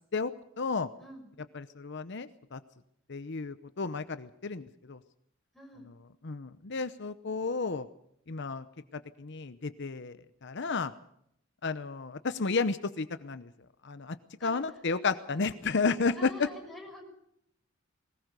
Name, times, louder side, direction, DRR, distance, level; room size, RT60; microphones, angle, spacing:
voice 1, 0.1-0.9 1.5-2.6 3.1-5.0 6.2-7.9 8.3-8.7 8.9-10.9 11.6-13.5 13.8-14.2 14.4-16.5, left 4 dB, 60° left, 12 dB, 0.8 m, -32 dB
voice 2, 1.0-1.3 5.5-5.9 14.4-14.8 16.1-17.1, left 1 dB, ahead, 1 dB, 6.3 m, -47 dB
21.0 x 19.5 x 6.7 m, 0.73 s
head